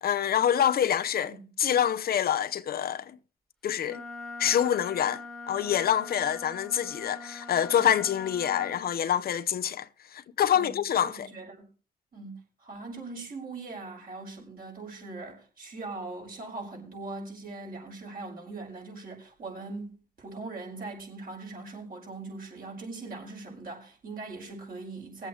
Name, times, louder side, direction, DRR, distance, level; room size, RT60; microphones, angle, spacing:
voice 1, 0.0-3.1 3.6-4.0 4.4-11.3, left 9 dB, 70° left, 0.7 m, -26 dB
Wind instrument woodwind instrument, 3.8-8.8, left 3 dB, ahead, 1.5 m, -43 dB
voice 2, 10.5-11.6 12.1-25.3, right 3 dB, 60° right, 5.3 m, -41 dB
23.0 x 8.0 x 3.1 m
supercardioid pair, 55°, 16 cm